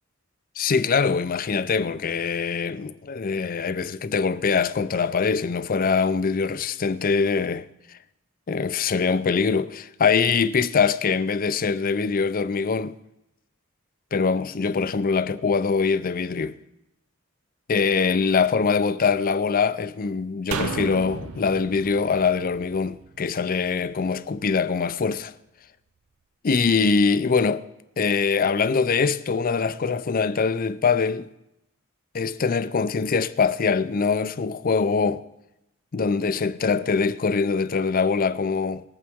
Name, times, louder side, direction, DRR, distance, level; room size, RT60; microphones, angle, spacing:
voice 1, 0.6-7.7 8.5-12.9 14.1-16.5 17.7-25.3 26.4-27.6 28.0-31.3 32.1-35.2 35.9-38.8, left 5 dB, 40° left, 0.5 m, -23 dB
sound 1, 20.5-23.8 24.1-24.2, right 5 dB, 90° right, 0.7 m, -34 dB
20.0 x 8.6 x 3.6 m
head